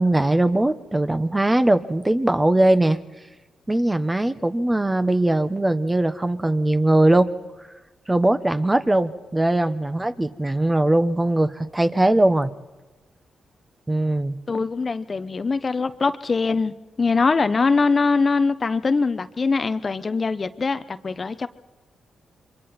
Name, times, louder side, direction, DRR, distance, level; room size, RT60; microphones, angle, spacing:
voice 1, 0.0-3.0 3.7-7.3 8.1-12.5 13.9-14.4, right 1 dB, 20° right, 1.3 m, -20 dB
voice 2, 14.5-21.5, left 4 dB, 45° left, 0.9 m, -22 dB
27.0 x 23.5 x 4.4 m
supercardioid pair, 55°, 0 cm